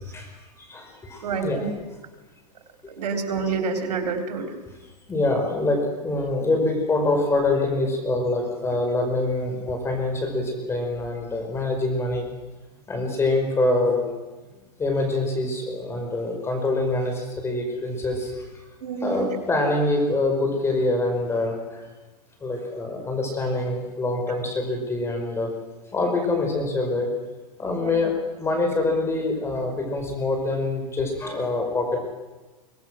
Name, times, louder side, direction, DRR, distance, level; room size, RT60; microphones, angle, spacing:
voice 1, 0.1-1.6 5.1-12.3 12.9-14.1 14.8-18.5 19.0-21.8 22.4-25.5 25.9-27.1 27.6-32.0, left 2 dB, 10° left, 3 dB, 5.2 m, -25 dB
voice 2, 1.2-1.7 3.0-4.5 18.8-19.3 27.8-28.0, right 5 dB, 85° right, 5 dB, 3.3 m, -28 dB
23.5 x 18.5 x 6.3 m, 1.2 s
hypercardioid pair, 140°, 20 cm